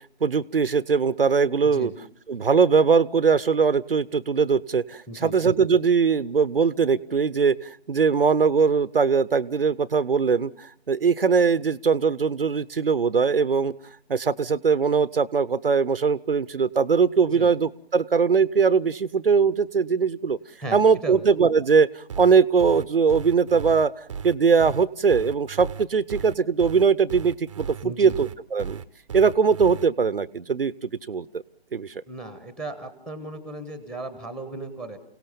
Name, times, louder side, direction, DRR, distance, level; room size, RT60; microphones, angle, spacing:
voice 1, 0.2-1.9 2.3-13.7 14.1-20.4 20.7-23.9 24.2-28.8 29.1-31.3 31.7-31.9, right 5 dB, 60° right, 17 dB, 0.8 m, -21 dB
voice 2, 5.1-5.4 17.3-17.5 20.6-21.2 27.8-28.2 32.1-35.0, right 2 dB, ahead, 11 dB, 1.2 m, -36 dB
sound 1, 22.1-29.9, right 7 dB, 30° right, 0.8 m, -35 dB
29.0 x 17.5 x 7.0 m, 0.68 s
figure-of-eight pair, 145°, 32 cm